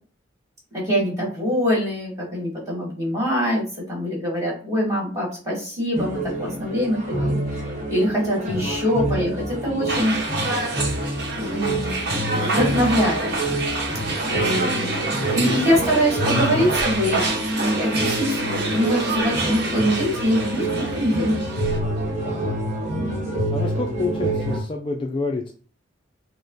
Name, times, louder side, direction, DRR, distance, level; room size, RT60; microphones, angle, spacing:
voice 1, 0.7-10.4 11.3-13.2 14.2-15.0 15.3-21.4, equal, 15° right, -4 dB, 2.2 m, -24 dB
sound 1, 5.9-24.6, right 1 dB, 40° right, 1.3 m, -27 dB
sound 2, 9.9-21.8, right 3 dB, 55° right, 1.0 m, -27 dB
voice 2, 15.1-15.7 16.3-16.8 23.5-25.5, left 3 dB, 25° left, 2 dB, 0.4 m, -28 dB
5.1 x 2.1 x 4.0 m, 0.40 s
head